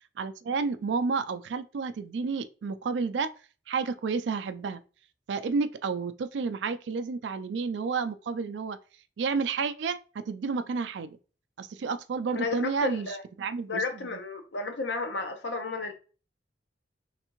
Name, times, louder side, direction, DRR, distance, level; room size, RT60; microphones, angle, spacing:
voice 1, 0.2-3.3 3.7-4.8 5.3-8.8 9.2-11.2 11.6-13.1 13.4-13.8 14.1-14.2, right 4 dB, 80° right, 0.4 m, -30 dB
voice 2, 12.3-13.2 13.7-15.9, left 3 dB, 80° left, 0.7 m, -32 dB
3.5 x 3.3 x 2.9 m
head